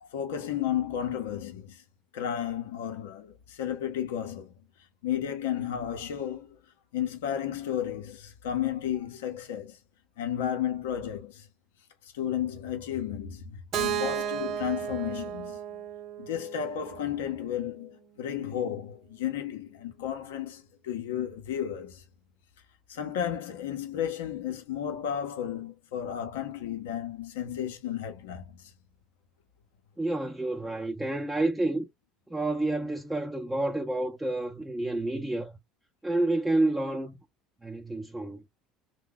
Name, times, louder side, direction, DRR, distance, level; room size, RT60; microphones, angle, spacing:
voice 1, 0.0-1.8 2.1-4.5 5.0-6.6 6.9-9.8 10.2-11.5 12.0-15.6 16.2-22.0 22.9-28.7, left 10 dB, 90° left, 0.7 m, -33 dB
Keyboard (musical), 13.7-17.6, right 10 dB, 55° right, 0.5 m, -34 dB
voice 2, 30.0-31.9 32.3-35.5 36.0-37.2 37.6-38.4, right 2 dB, 10° right, 0.6 m, -29 dB
2.8 x 2.1 x 3.7 m
supercardioid pair, 85°, 0 cm